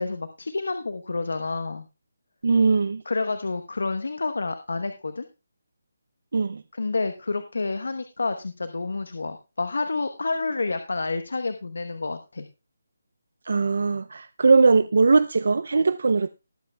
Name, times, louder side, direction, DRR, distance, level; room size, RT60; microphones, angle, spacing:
voice 1, 0.0-1.9 3.1-5.2 6.7-12.5, left 3 dB, 75° left, 1.0 m, -29 dB
voice 2, 2.4-3.0 6.3-6.6 13.5-16.3, right 4 dB, 55° right, 0.4 m, -20 dB
19.5 x 7.8 x 2.3 m
hypercardioid pair, 175°, 0 cm